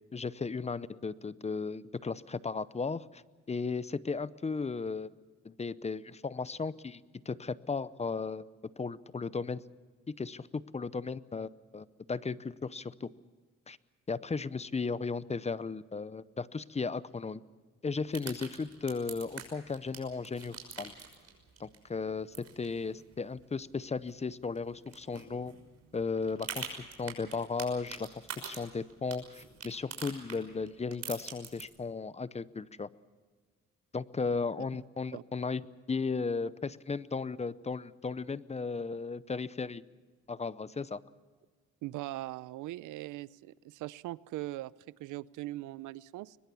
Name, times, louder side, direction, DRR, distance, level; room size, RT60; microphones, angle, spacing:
voice 1, 0.1-3.2 3.5-5.1 5.4-7.0 7.3-8.4 8.8-9.6 10.1-13.1 13.7-13.8 14.1-17.4 17.8-20.9 21.6-25.6 25.9-32.9 33.9-35.6 35.9-39.8 40.3-41.0, left 4 dB, 20° left, 18 dB, 0.7 m, -35 dB
sound 1, 18.0-31.6, right 6 dB, 55° right, 6.0 m, -47 dB
voice 2, 41.8-46.4, right 17 dB, 90° right, 20 dB, 0.6 m, -41 dB
22.5 x 21.0 x 7.0 m, 1.4 s
cardioid pair, 90°, 30 cm